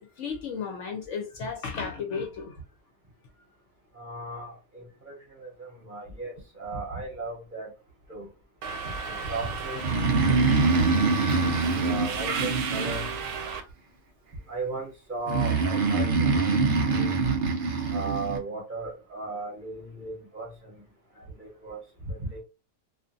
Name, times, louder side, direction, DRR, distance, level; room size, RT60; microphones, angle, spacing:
voice 1, 0.2-2.6 13.5-13.6, left 5 dB, 65° left, 0.8 m, -34 dB
voice 2, 3.9-7.7 8.1-8.3 8.8-9.8 11.3-13.1 14.5-17.1 17.9-20.8 21.1-22.4, right 3 dB, 40° right, 0.8 m, -37 dB
Subway metro underground, 8.6-13.6, right 5 dB, 85° right, 1.1 m, -34 dB
Breathing, 9.7-13.5 15.3-18.4, right 4 dB, 65° right, 0.5 m, -24 dB
2.5 x 2.4 x 2.5 m
omnidirectional pair, 1.5 m